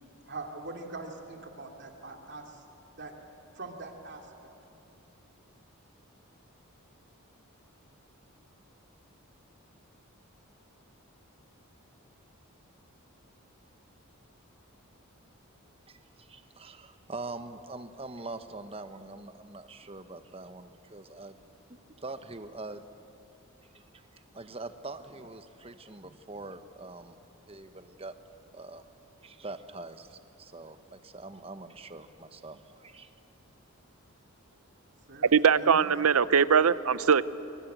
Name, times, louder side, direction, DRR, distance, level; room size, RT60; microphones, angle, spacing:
voice 1, 0.2-2.6 3.0-3.1 3.6-4.5 35.1-35.9, right 3 dB, 50° right, 2 dB, 2.6 m, -43 dB
voice 2, 15.9-21.4 21.7-22.8 23.7-27.2 27.5-28.1 28.5-28.9 29.2-33.1, right 3 dB, 25° right, 9 dB, 1.0 m, -44 dB
voice 3, 35.2-37.2, right 6 dB, 80° right, 16 dB, 0.6 m, -21 dB
24.5 x 22.0 x 8.1 m, 2.8 s
head